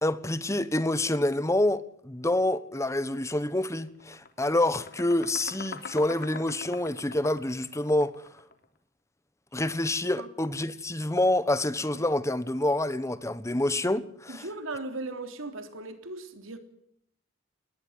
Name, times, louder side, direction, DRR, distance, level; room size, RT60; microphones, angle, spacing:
voice 1, 0.0-8.3 9.5-14.5, left 1 dB, 15° left, 1.2 m, -27 dB
sound 1, 3.1-3.3 3.7-8.6, left 4 dB, 55° left, 3.3 m, -43 dB
voice 2, 14.3-16.6, right 2 dB, 80° right, 3.6 m, -37 dB
20.5 x 20.0 x 7.6 m
head